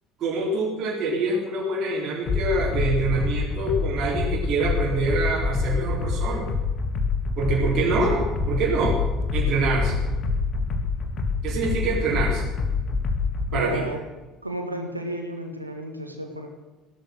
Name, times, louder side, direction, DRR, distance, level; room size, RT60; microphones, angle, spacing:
voice 1, 0.2-6.5 7.4-9.0 9.3-10.0 11.4-12.4 13.5-13.8, right 3 dB, 45° right, -3 dB, 3.7 m, -25 dB
sound 1, 2.3-13.5, left 4 dB, 45° left, 2.1 m, -26 dB
voice 2, 13.5-14.0 14.4-16.5, right 1 dB, 90° right, 4 dB, 1.8 m, -32 dB
16.5 x 13.0 x 6.5 m, 1.2 s
figure-of-eight pair, 60°, 0 cm